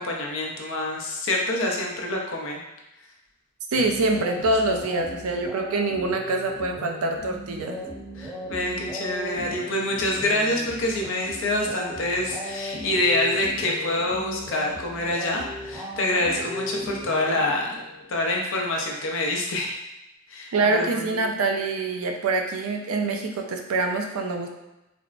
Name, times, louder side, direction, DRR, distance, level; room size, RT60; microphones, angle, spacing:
voice 1, 0.0-2.6 8.2-17.8 18.1-19.8 20.3-21.2, left 1 dB, 60° left, 0 dB, 0.5 m, -26 dB
sound 1, 3.7-18.0, left 1 dB, 5° right, 0.7 m, -37 dB
voice 2, 3.7-7.8 20.5-24.5, right 3 dB, 75° right, 3 dB, 0.4 m, -25 dB
3.3 x 2.0 x 2.4 m, 0.94 s
head